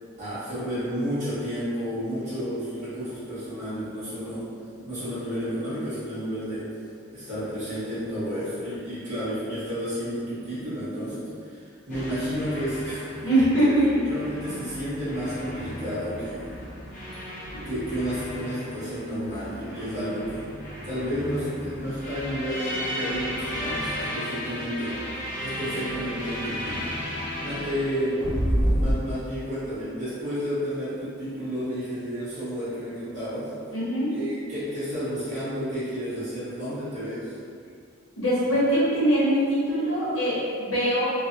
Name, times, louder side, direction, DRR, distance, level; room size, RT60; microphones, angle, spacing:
voice 1, 0.2-4.5 4.8-6.7 7.1-13.3 14.0-16.6 17.6-20.5 20.8-25.0 25.4-26.9 27.4-33.5 34.1-37.3, equal, 35° right, -14 dB, 1.3 m, -31 dB
sound 1, 11.9-28.9, equal, 40° left, 0.6 m, -33 dB
voice 2, 13.2-14.0 15.5-15.7 17.5-17.7 27.5-27.6 33.7-34.1 38.1-41.1, equal, 70° left, -9 dB, 1.0 m, -23 dB
3.1 x 2.1 x 2.5 m, 2.3 s
head